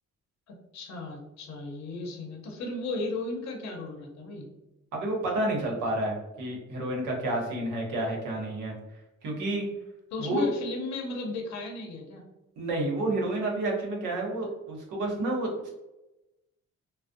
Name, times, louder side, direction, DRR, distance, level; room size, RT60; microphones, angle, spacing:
voice 1, 0.7-4.5 10.1-12.2, left 2 dB, 60° left, 1 dB, 0.6 m, -35 dB
voice 2, 4.9-8.7 9.2-9.7 10.2-10.5 12.6-15.7, right 1 dB, 90° right, -1 dB, 0.8 m, -30 dB
2.5 x 2.0 x 2.5 m, 0.98 s
cardioid pair, 75°, 31 cm